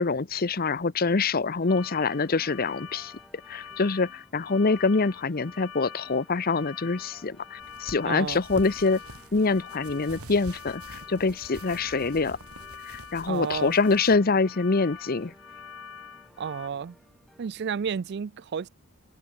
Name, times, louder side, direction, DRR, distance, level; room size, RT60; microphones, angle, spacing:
voice 1, 0.0-3.1 3.5-9.0 9.3-12.4 12.9-15.3, left 4 dB, 40° left, 0.7 m, -25 dB
sound 1, 1.6-17.5, equal, ahead, 3.0 m, -58 dB
sound 2, 1.7-16.7, left 7 dB, 65° left, 1.3 m, -45 dB
sound 3, 7.6-14.2, right 2 dB, 80° right, 6.4 m, -46 dB
voice 2, 8.0-8.4 13.3-13.8 16.4-17.0 17.4-18.7, right 6 dB, 50° right, 0.4 m, -31 dB
open air
head